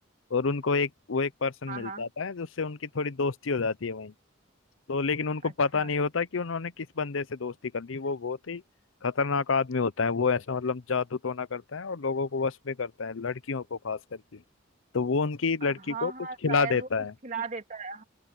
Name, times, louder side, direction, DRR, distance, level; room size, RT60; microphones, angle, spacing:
voice 1, 0.3-4.1 4.9-8.6 9.0-14.4 14.9-16.1 16.4-17.1, left 4 dB, 85° left, 0.7 m, -29 dB
voice 2, 1.7-2.1 5.4-5.9 15.6-16.9 17.2-18.0, right 5 dB, 40° right, 3.0 m, -37 dB
open air
head